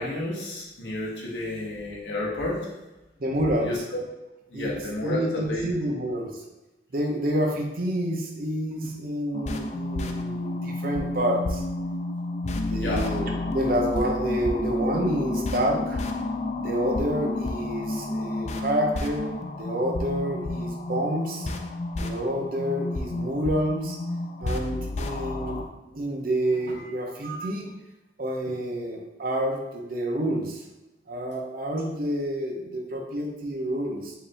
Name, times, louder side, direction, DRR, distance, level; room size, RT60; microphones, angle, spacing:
voice 1, 0.0-2.7 3.6-4.0 4.5-5.7 12.8-13.1 26.8-26.9, left 2 dB, 80° left, -4 dB, 1.2 m, -31 dB
voice 2, 3.2-3.7 4.5-4.7 5.0-6.4 6.9-11.6 12.5-16.0 16.6-19.3 19.6-21.5 22.0-24.0 24.4-25.6 25.9-27.7 28.2-30.6 31.1-34.1, right 1 dB, 50° right, 0 dB, 0.7 m, -28 dB
sound 1, 9.3-25.7, left 2 dB, 40° left, 0.3 m, -30 dB
4.8 x 2.6 x 3.3 m, 1.0 s
head